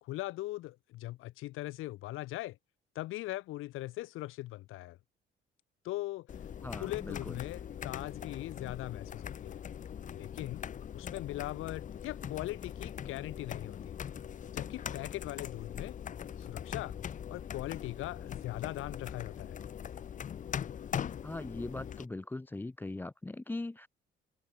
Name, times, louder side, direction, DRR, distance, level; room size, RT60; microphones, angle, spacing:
voice 1, 0.0-2.6 2.9-5.0 5.8-6.3 6.7-9.6 10.1-10.6 10.9-14.0 14.5-16.0 16.4-17.0 17.3-19.6, left 17 dB, 80° left, 1.1 m, -40 dB
sound 1, 6.3-22.1, left 8 dB, 40° left, 1.1 m, -41 dB
voice 2, 6.6-7.4 21.2-23.9, left 2 dB, 10° left, 0.9 m, -40 dB
cardioid pair, 140°, 21 cm